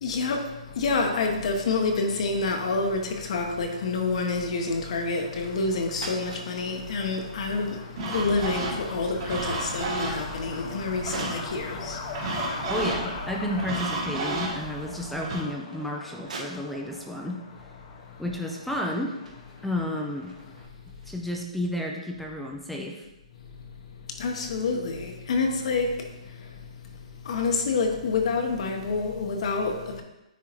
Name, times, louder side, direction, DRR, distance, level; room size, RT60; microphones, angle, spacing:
voice 1, 0.0-12.7 24.1-26.7 27.1-30.0, left 3 dB, 55° left, 3 dB, 1.0 m, -28 dB
Truck, 0.7-20.7, left 4 dB, 35° left, 0.9 m, -43 dB
sound 1, 5.3-5.7 5.9-6.5 8.1-8.3 8.8-11.6 12.2-12.3 13.0-13.5 13.9-17.0 17.9-18.1 18.4-21.5, right 3 dB, 85° right, 1.7 m, -45 dB
sound 2, 8.0-15.4, right 2 dB, 40° right, 1.8 m, -33 dB
voice 2, 12.7-17.4 18.2-19.2 19.6-20.3 21.1-23.0, left 1 dB, ahead, 0 dB, 0.5 m, -31 dB
9.4 x 3.7 x 3.0 m, 0.98 s
hypercardioid pair, 150°, 4 cm